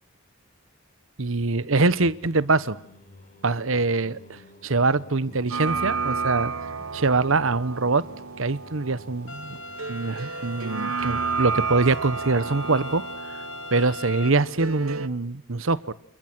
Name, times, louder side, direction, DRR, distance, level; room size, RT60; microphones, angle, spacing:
voice 1, 1.2-2.8 3.4-6.5 6.9-8.0 8.4-9.6 9.9-13.4 13.7-15.8, right 3 dB, 70° right, 17 dB, 1.1 m, -24 dB
Singing, 1.5-12.7, left 1 dB, 40° left, 4.2 m, -52 dB
sound 1, 5.5-15.1, right 5 dB, 85° right, 1.3 m, -32 dB
sound 2, 9.3-14.3, left 2 dB, 65° left, 2.2 m, -39 dB
29.0 x 29.0 x 6.2 m, 0.70 s
head